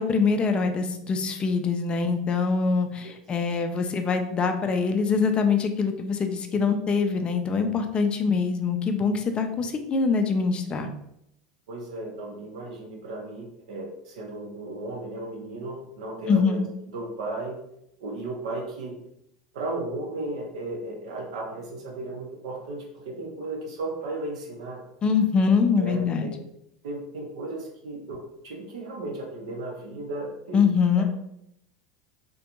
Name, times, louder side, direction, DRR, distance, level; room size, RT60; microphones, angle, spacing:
voice 1, 0.0-10.9 16.3-16.6 25.0-26.3 30.5-31.0, left 5 dB, 30° left, 6 dB, 0.4 m, -24 dB
voice 2, 11.7-17.6 18.0-19.0 19.5-24.8 25.8-26.3 26.8-28.2 28.4-30.6 31.0-31.1, right 2 dB, 80° right, 0 dB, 0.6 m, -35 dB
2.4 x 2.2 x 2.9 m, 0.78 s
hypercardioid pair, 90°, 3 cm